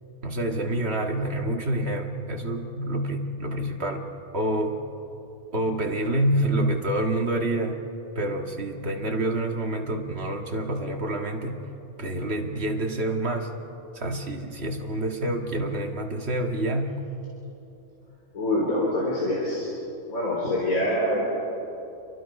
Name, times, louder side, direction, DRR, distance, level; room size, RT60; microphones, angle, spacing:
voice 1, 0.2-4.1 4.3-4.8 5.5-7.8 8.2-11.6 12.0-13.5 13.9-16.9, right 1 dB, 45° right, 2 dB, 2.2 m, -27 dB
voice 2, 18.3-19.7 20.1-21.2, left 1 dB, 70° left, -5 dB, 4.4 m, -25 dB
29.5 x 23.0 x 5.5 m, 2.9 s
omnidirectional pair, 1.5 m